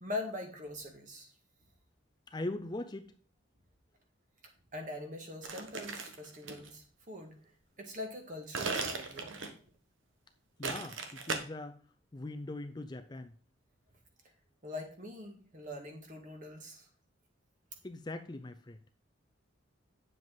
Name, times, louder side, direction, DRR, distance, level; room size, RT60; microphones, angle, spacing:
voice 1, 0.0-1.3 4.7-7.3 7.8-9.4 14.6-16.9, left 2 dB, 40° right, 3 dB, 1.9 m, -43 dB
voice 2, 2.3-3.1 10.6-11.8 12.1-13.3 17.8-18.8, left 2 dB, 20° left, 9 dB, 0.4 m, -41 dB
sound 1, 5.4-6.7 8.5-9.7 10.6-11.4, right 4 dB, 70° right, 1.3 m, -37 dB
9.1 x 7.3 x 3.9 m, 0.42 s
head